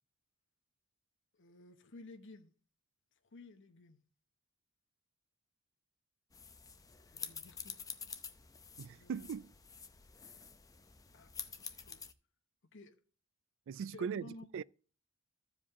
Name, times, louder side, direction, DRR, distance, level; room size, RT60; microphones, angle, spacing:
voice 1, 1.4-2.5 3.3-4.0 7.1-7.8 9.0-9.3 11.1-12.0 12.7-12.9 13.7-14.5, left 2 dB, 65° left, 1.0 m, -54 dB
sound 1, 6.3-12.1, left 6 dB, 15° left, 0.6 m, -48 dB
voice 2, 8.8-9.5 13.7-14.6, right 6 dB, 65° right, 0.3 m, -40 dB
14.5 x 5.0 x 3.6 m
head